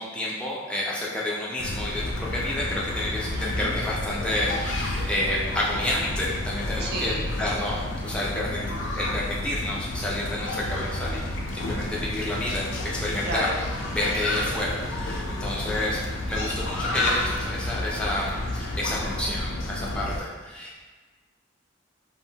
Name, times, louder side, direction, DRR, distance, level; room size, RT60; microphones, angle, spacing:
voice 1, 0.0-8.6 9.0-11.3 11.5-13.5 13.9-20.8, left 1 dB, 5° left, -5 dB, 0.3 m, -30 dB
sound 1, 1.6-20.2, left 1 dB, 80° left, 0.4 m, -30 dB
voice 2, 3.3-3.7 6.8-7.3 13.2-13.6, right 2 dB, 55° right, -1 dB, 0.4 m, -31 dB
2.6 x 2.0 x 2.7 m, 1.4 s
head